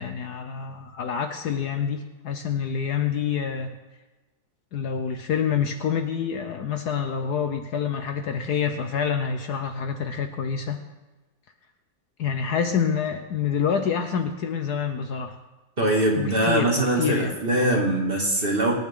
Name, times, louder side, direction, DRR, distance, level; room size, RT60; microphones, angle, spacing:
voice 1, 0.0-3.7 4.7-10.8 12.2-15.4 16.2-17.3, left 7 dB, 65° left, 6 dB, 1.2 m, -27 dB
voice 2, 15.8-18.7, right 1 dB, 30° right, -1 dB, 2.4 m, -22 dB
25.0 x 9.3 x 3.7 m, 1.2 s
omnidirectional pair, 2.1 m